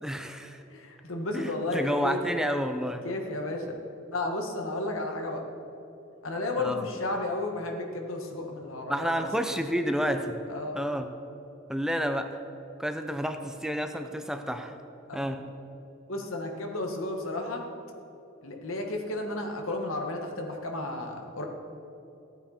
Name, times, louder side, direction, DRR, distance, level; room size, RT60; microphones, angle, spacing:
voice 1, 0.0-0.6 1.3-3.0 6.6-6.8 8.9-10.4 10.7-11.1 11.7-12.4 12.8-14.7 15.1-15.4, equal, 5° right, 6 dB, 0.6 m, -30 dB
voice 2, 0.7-2.2 3.0-3.7 4.1-5.4 6.2-9.3 10.5-10.9 15.1-15.2 16.1-17.6 18.4-21.4, left 2 dB, 90° left, 2 dB, 1.6 m, -33 dB
15.0 x 8.9 x 4.4 m, 3.0 s
head